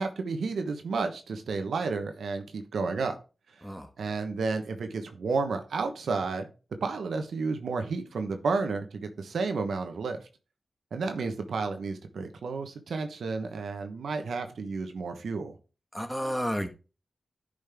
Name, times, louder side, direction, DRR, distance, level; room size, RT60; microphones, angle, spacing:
voice 1, 0.0-3.2 4.0-6.5 6.8-10.2 10.9-15.6, right 4 dB, 85° right, 1.1 m, -31 dB
voice 2, 15.9-16.7, equal, 5° left, 1.5 m, -31 dB
10.5 x 5.2 x 3.6 m
cardioid pair, 50°, 0 cm